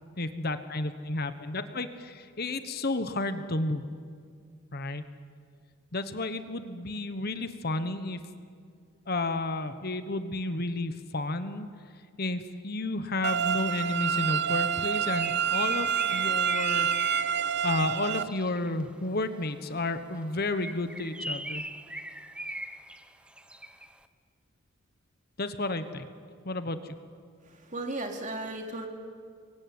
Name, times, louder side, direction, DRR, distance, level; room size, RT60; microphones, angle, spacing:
voice 1, 0.2-3.8 4.7-5.0 5.9-8.2 9.1-11.7 12.2-16.9 17.6-21.7 25.4-26.1 26.4-26.9, left 2 dB, 45° left, 10 dB, 1.3 m, -32 dB
sound 1, 13.2-18.2, right 7 dB, 55° right, 0.7 m, -28 dB
Bird, 14.7-18.8 20.4-23.9, right 1 dB, 5° right, 0.9 m, -40 dB
voice 2, 27.4-28.9, right 2 dB, 35° right, 3 dB, 3.0 m, -35 dB
27.0 x 23.0 x 9.6 m, 2.1 s
head